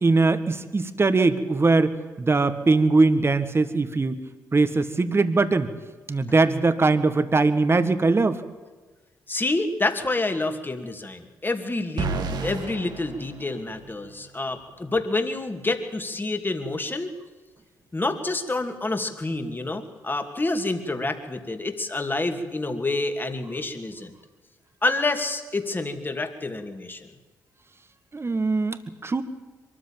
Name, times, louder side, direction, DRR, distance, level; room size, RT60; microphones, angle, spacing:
voice 1, 0.0-4.2 4.5-5.7 6.1-8.4 28.1-29.2, right 3 dB, 35° right, 10 dB, 1.7 m, -21 dB
voice 2, 9.3-12.1 12.4-17.1 17.9-24.1 24.8-27.1, left 2 dB, 25° left, 6 dB, 2.7 m, -28 dB
sound 1, 12.0-14.1, right 4 dB, 65° right, 1.9 m, -31 dB
23.0 x 14.0 x 9.0 m, 1.3 s
supercardioid pair, 50°, 8 cm